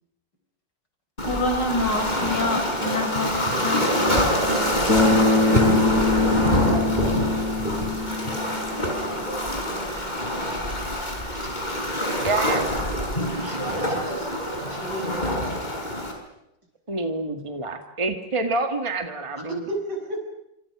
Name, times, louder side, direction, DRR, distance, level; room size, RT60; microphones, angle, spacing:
voice 1, 1.2-6.8, left 1 dB, 65° left, 5 dB, 5.8 m, -29 dB
Waves surf, 1.2-16.1, equal, 20° left, 5.5 m, -25 dB
Bass guitar, 4.9-9.1, left 3 dB, 45° left, 4.1 m, -23 dB
voice 2, 9.1-9.8 11.2-12.3 13.4-15.5 19.3-20.2, right 1 dB, 60° right, 1 dB, 7.6 m, -35 dB
voice 3, 12.2-12.6 16.9-19.6, right 3 dB, 15° right, 6 dB, 1.9 m, -27 dB
27.5 x 27.0 x 6.1 m, 0.81 s
omnidirectional pair, 2.0 m